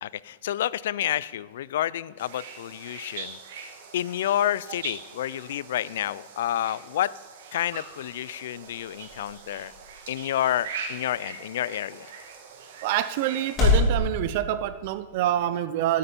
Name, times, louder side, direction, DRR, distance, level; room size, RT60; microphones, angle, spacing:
voice 1, 0.0-7.1 7.5-9.7 10.1-12.1, left 12 dB, 70° left, 20 dB, 0.3 m, -29 dB
sound 1, 2.2-13.8, right 5 dB, 60° right, 1.6 m, -42 dB
sound 2, 7.7-13.9, left 3 dB, 20° left, 4.6 m, -30 dB
voice 2, 12.8-16.0, right 12 dB, 45° right, 13 dB, 0.4 m, -26 dB
13.0 x 8.5 x 5.3 m, 1.3 s
supercardioid pair, 170°, 0 cm